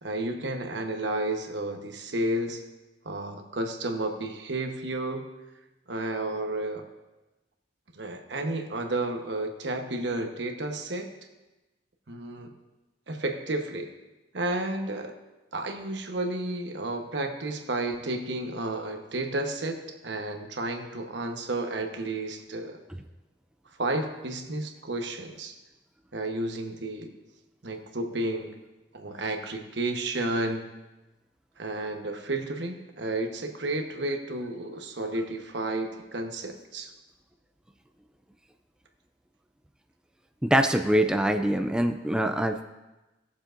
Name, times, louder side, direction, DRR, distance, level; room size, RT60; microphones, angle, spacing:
voice 1, 0.0-2.6 3.0-5.3 5.9-6.8 7.9-11.1 12.1-12.5 13.1-13.9 14.3-15.1 15.5-22.8 23.8-25.6 26.1-27.1 27.6-28.5 28.9-30.7 31.6-36.9, right 2 dB, 75° right, 4 dB, 1.1 m, -32 dB
voice 2, 40.5-42.6, right 1 dB, 5° right, 5 dB, 0.4 m, -24 dB
18.0 x 7.1 x 2.6 m, 1.1 s
head